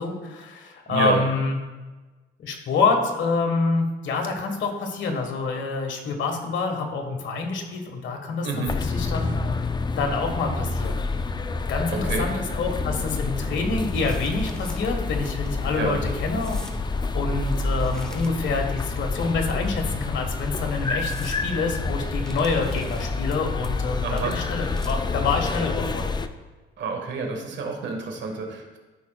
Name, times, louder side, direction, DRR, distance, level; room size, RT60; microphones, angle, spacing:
voice 1, 0.0-1.6 2.4-8.5 8.7-9.3 10.0-11.0 11.7-26.1, left 4 dB, 70° left, 3 dB, 1.3 m, -27 dB
voice 2, 0.9-1.3 8.4-8.8 11.9-12.3 15.7-16.0 24.0-24.4 26.8-28.8, right 4 dB, 65° right, 3 dB, 1.5 m, -28 dB
sound 1, 8.7-26.3, left 3 dB, 20° left, 0.4 m, -28 dB
sound 2, 13.6-14.8 15.2-15.5 16.4-16.8 17.4-18.6 19.4-20.0 20.5-20.6 21.0-21.4 22.3-23.4 23.6-23.9 24.2-25.1, equal, 5° left, 0.8 m, -47 dB
13.5 x 4.9 x 2.3 m, 1.2 s
cardioid pair, 90°, 20 cm